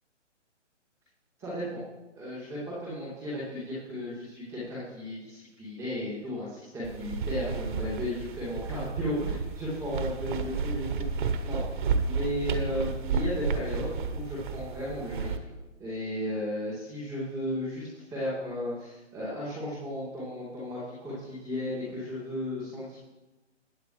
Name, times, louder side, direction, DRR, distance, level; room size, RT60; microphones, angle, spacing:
voice 1, 1.4-1.8 2.1-15.5 15.8-23.0, left 1 dB, ahead, -16 dB, 0.4 m, -35 dB
sound 1, 6.8-15.4, right 5 dB, 40° right, 1.2 m, -32 dB
21.0 x 8.5 x 3.3 m, 1.1 s
hypercardioid pair, 145°, 37 cm